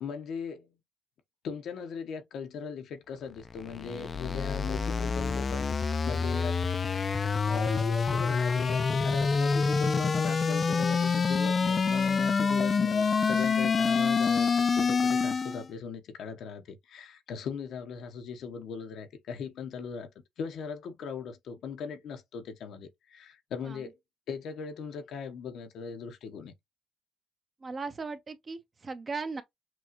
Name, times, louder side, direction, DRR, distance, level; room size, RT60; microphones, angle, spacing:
voice 1, 0.0-0.8 1.4-5.8 6.1-7.1 7.5-20.1 20.4-23.9 24.3-26.5, left 6 dB, 75° left, 0.9 m, -39 dB
sound 1, 3.4-15.7, left 5 dB, 40° left, 0.5 m, -27 dB
voice 2, 27.6-29.4, right 4 dB, 35° right, 0.9 m, -37 dB
6.1 x 2.4 x 2.9 m
cardioid pair, 90°, 0 cm